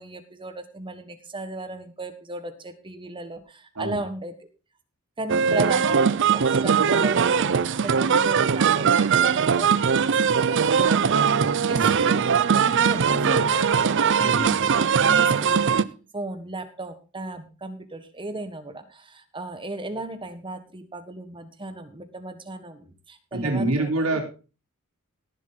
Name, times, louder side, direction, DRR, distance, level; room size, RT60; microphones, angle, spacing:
voice 1, 0.0-4.3 5.2-14.5 15.0-15.7 16.1-24.2, right 2 dB, 25° right, 8 dB, 1.6 m, -36 dB
sound 1, 5.3-15.8, right 6 dB, 60° right, 0.6 m, -20 dB
voice 2, 23.3-24.2, right 2 dB, 85° right, 2 dB, 4.1 m, -26 dB
18.0 x 7.5 x 4.1 m, 0.33 s
head